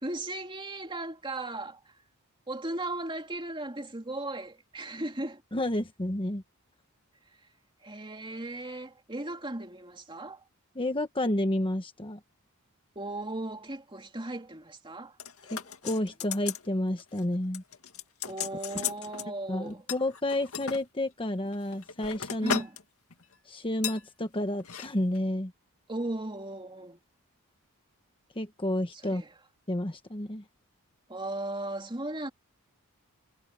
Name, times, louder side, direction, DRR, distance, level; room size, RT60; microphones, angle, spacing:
voice 1, 0.0-2.0 2.5-5.4 7.8-10.4 12.9-15.2 18.2-19.8 22.4-22.8 25.9-27.0 28.9-29.3 31.1-32.3, right 2 dB, 20° right, 2.8 m, -37 dB
voice 2, 5.5-6.4 10.7-12.2 15.5-17.6 19.5-22.6 23.5-25.5 28.4-29.2 29.7-30.4, left 1 dB, 25° left, 1.3 m, -30 dB
sound 1, 15.2-16.7 17.0-17.2 17.5-19.3 19.9-20.8 21.4-22.8 23.1-23.3 23.8-24.0 24.6-24.9 25.1-25.2, left 8 dB, 70° left, 2.2 m, -36 dB
head